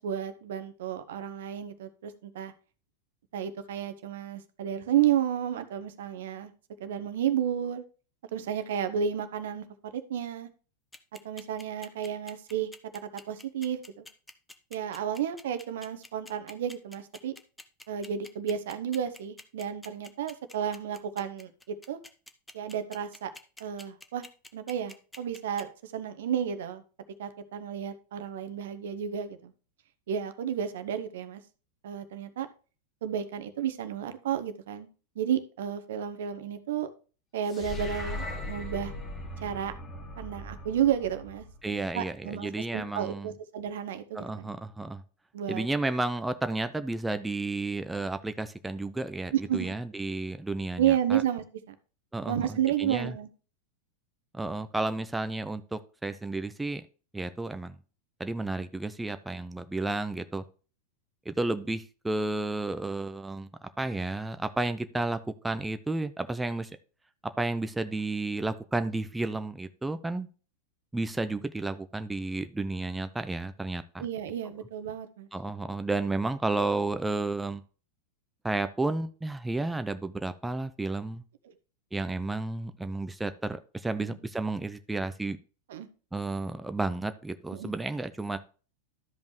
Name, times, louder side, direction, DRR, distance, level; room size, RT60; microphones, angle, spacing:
voice 1, 0.0-2.5 3.3-6.5 6.8-7.8 8.3-10.5 11.2-12.7 13.3-14.1 14.7-17.3 17.9-22.0 22.5-23.3 23.6-24.3 24.5-26.8 27.2-29.5 30.1-31.4 31.8-32.5 33.0-34.9 35.2-36.9 37.3-38.9 39.4-39.7 40.2-44.5 45.3-45.7 49.3-49.7 50.8-51.7 52.3-53.3 74.0-75.3 81.4-81.5 84.0-84.2 85.7-85.9 87.5-87.7, right 9 dB, 65° right, 10 dB, 0.9 m, -32 dB
sound 1, 10.9-25.6, left 2 dB, 5° left, 0.9 m, -47 dB
sound 2, 37.5-41.9, left 1 dB, 25° left, 1.9 m, -39 dB
voice 2, 41.6-43.3 44.1-45.0 45.5-51.2 52.1-53.1 54.3-56.8 57.1-57.8 58.2-60.4 61.3-63.5 63.8-66.7 67.4-70.3 70.9-74.1 75.3-77.6 78.4-81.2 81.9-85.4 86.1-88.4, right 2 dB, 10° right, 10 dB, 0.6 m, -32 dB
13.0 x 5.2 x 3.1 m, 0.36 s
figure-of-eight pair, 90°, 0 cm